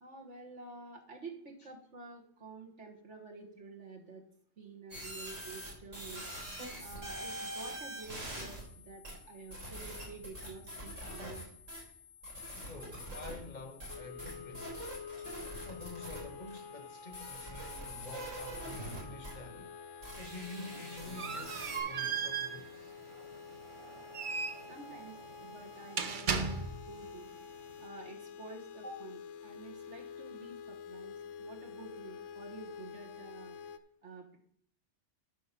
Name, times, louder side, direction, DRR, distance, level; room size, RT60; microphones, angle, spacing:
voice 1, 0.0-4.2 4.6-6.3 6.8-11.5 24.7-27.3 27.8-33.6 34.0-34.4, right 3 dB, 65° right, 1.7 m, -50 dB
sound 1, 4.9-21.8, equal, 85° right, 4.1 m, -45 dB
voice 2, 12.7-15.0 15.6-19.8 20.2-22.9, left 3 dB, 40° left, 0.9 m, -48 dB
sound 2, 13.9-33.8, left 6 dB, 75° left, 1.0 m, -48 dB
sound 3, 20.4-27.0, right 5 dB, 45° right, 0.9 m, -38 dB
12.5 x 4.9 x 5.9 m
omnidirectional pair, 1.3 m